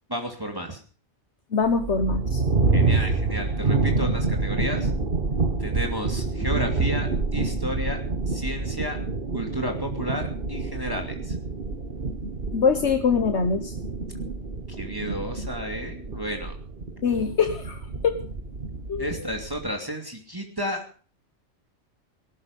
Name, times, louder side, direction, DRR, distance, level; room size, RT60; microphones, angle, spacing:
voice 1, 0.1-0.8 2.7-4.9 5.6-8.0 8.3-9.0 9.3-11.4 14.7-16.6 19.0-20.8, equal, 20° right, 2 dB, 2.6 m, -32 dB
voice 2, 1.5-2.4 12.5-13.8 17.0-18.2 18.9-19.2, left 5 dB, 70° left, 7 dB, 1.5 m, -23 dB
sound 1, 1.6-19.7, right 3 dB, 50° right, 1.8 m, -27 dB
18.0 x 13.0 x 5.3 m, 0.41 s
omnidirectional pair, 1.2 m